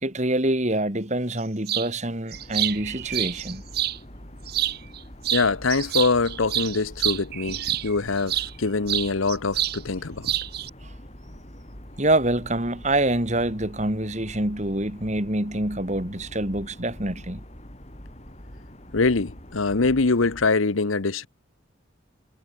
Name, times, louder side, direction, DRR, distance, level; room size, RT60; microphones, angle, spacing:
voice 1, 0.0-3.6 10.8-10.9 12.0-17.4, right 1 dB, 35° right, 3.5 m, -26 dB
sound 1, 1.7-1.9 2.3-4.0 4.5-5.0 5.2-8.5 8.9-9.8 10.0-10.7, right 12 dB, 50° right, 0.6 m, -27 dB
sound 2, 2.3-20.5, equal, 35° left, 4.8 m, -44 dB
voice 2, 5.3-10.3 18.9-21.3, left 3 dB, 90° left, 1.1 m, -24 dB
head